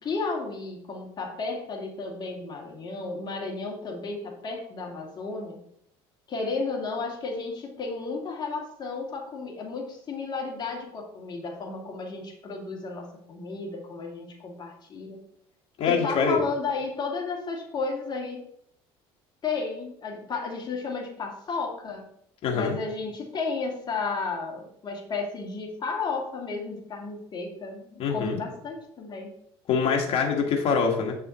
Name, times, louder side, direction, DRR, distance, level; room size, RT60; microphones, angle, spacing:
voice 1, 0.0-5.6 6.3-15.2 15.9-18.4 19.4-22.0 22.5-29.3, left 4 dB, 35° left, 0 dB, 2.2 m, -33 dB
voice 2, 15.8-16.4 22.4-22.8 28.0-28.4 29.7-31.2, left 5 dB, 55° left, 1 dB, 1.6 m, -24 dB
7.8 x 5.4 x 4.3 m, 0.71 s
cardioid pair, 110°, 12 cm